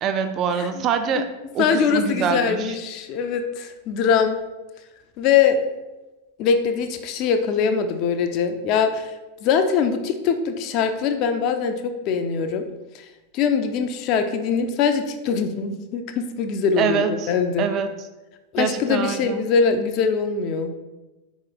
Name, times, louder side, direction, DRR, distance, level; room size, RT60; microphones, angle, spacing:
voice 1, 0.0-2.7 16.8-17.3 17.6-17.9 18.6-19.5, right 7 dB, 35° right, 8 dB, 0.4 m, -25 dB
voice 2, 1.6-4.4 5.2-5.6 6.4-9.1 9.4-12.6 12.9-13.1 13.3-17.7 18.5-20.7, left 6 dB, 40° left, 7 dB, 0.4 m, -22 dB
4.3 x 3.0 x 3.8 m, 1.1 s
figure-of-eight pair, 90°, 0 cm